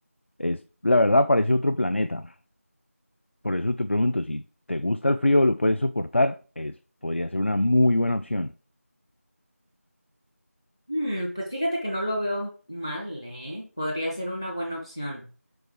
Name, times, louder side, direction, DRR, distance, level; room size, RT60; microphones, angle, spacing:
voice 1, 0.4-2.3 3.4-4.4 4.7-6.8 7.0-8.5, left 1 dB, 50° left, 0.4 m, -23 dB
voice 2, 10.9-15.3, equal, 15° left, 0.7 m, -30 dB
5.3 x 4.6 x 5.0 m
figure-of-eight pair, 175°, 8 cm